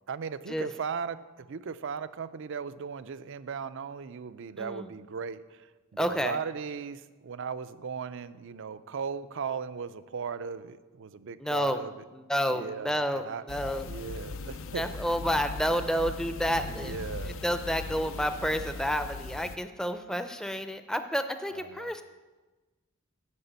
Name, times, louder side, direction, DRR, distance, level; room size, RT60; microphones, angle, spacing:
voice 1, 0.1-12.0 12.5-13.4 13.9-14.8 16.7-17.4 18.0-18.3 21.5-21.9, right 6 dB, 65° right, 14 dB, 0.5 m, -37 dB
voice 2, 4.6-4.9 6.0-6.4 11.4-11.8 12.1-13.9 14.8-17.0 17.4-22.0, equal, 5° left, 9 dB, 0.5 m, -30 dB
sound 1, 13.5-19.6, left 3 dB, 65° left, 0.5 m, -39 dB
9.8 x 5.9 x 8.1 m, 1.2 s
head